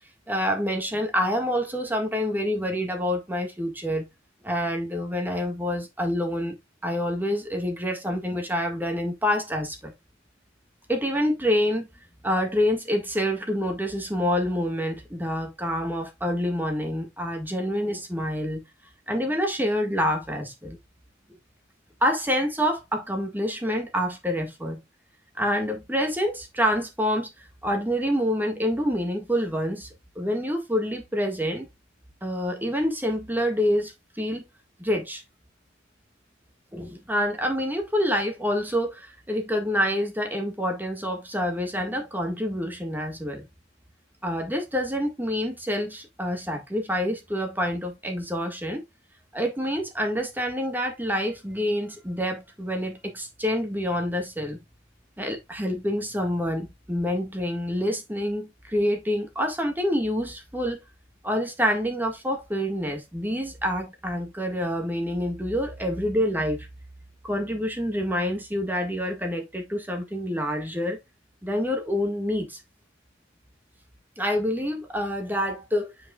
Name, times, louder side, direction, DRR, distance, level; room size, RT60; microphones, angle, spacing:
voice 1, 0.3-4.1 4.4-6.6 6.8-9.9 10.9-11.9 12.2-18.6 19.1-20.8 22.0-24.8 25.4-27.3 27.6-29.9 30.1-31.7 32.2-34.4 34.8-35.2 36.7-43.5 44.2-48.8 49.3-54.6 55.2-60.8 61.2-66.7 67.2-71.0 71.4-72.6 74.2-75.9, equal, 10° right, 1.7 m, -27 dB
9.2 x 4.8 x 2.4 m
head